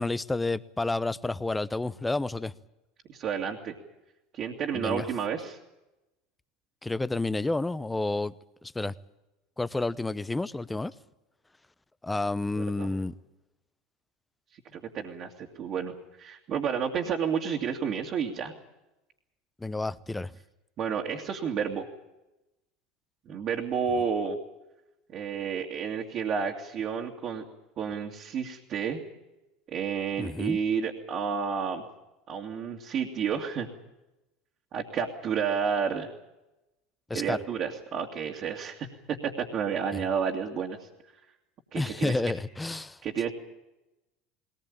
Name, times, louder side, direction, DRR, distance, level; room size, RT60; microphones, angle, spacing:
voice 1, 0.0-2.5 4.7-5.1 6.8-8.3 8.6-8.9 9.6-10.9 12.0-13.1 19.6-20.3 30.2-30.6 37.1-37.4 39.9-40.0 41.7-43.0, left 2 dB, 10° left, 0.8 m, -30 dB
voice 2, 3.1-3.7 4.3-5.6 12.6-12.9 14.5-18.5 20.8-21.9 23.3-24.4 25.1-27.4 27.8-29.0 29.7-31.8 32.3-33.7 34.7-36.1 37.1-40.9 41.7-42.2 43.0-43.3, right 7 dB, 45° right, 2.4 m, -31 dB
21.0 x 19.5 x 8.8 m
hypercardioid pair, 80°, 0 cm